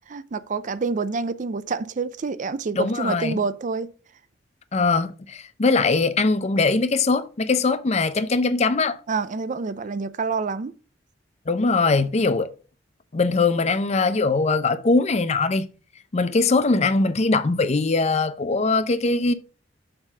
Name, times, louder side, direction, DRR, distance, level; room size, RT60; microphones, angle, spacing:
voice 1, 0.1-3.9 9.1-10.7, right 4 dB, 40° right, 0.4 m, -27 dB
voice 2, 2.7-3.4 4.7-9.0 11.5-12.5 13.1-15.7 16.1-19.3, left 3 dB, 35° left, 0.5 m, -21 dB
6.6 x 4.0 x 5.8 m
head